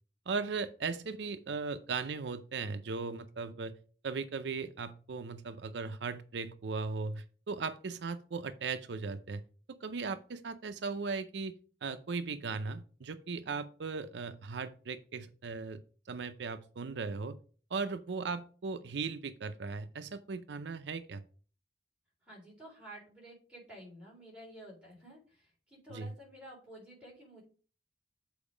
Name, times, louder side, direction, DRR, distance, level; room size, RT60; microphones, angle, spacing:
voice 1, 0.3-3.8 4.0-9.4 9.7-11.5 11.8-15.8 16.1-17.4 17.7-21.2 25.9-26.1, right 4 dB, 80° right, 11 dB, 0.5 m, -38 dB
voice 2, 22.2-27.4, right 1 dB, 5° right, -5 dB, 3.8 m, -52 dB
7.1 x 4.7 x 4.9 m, 0.40 s
head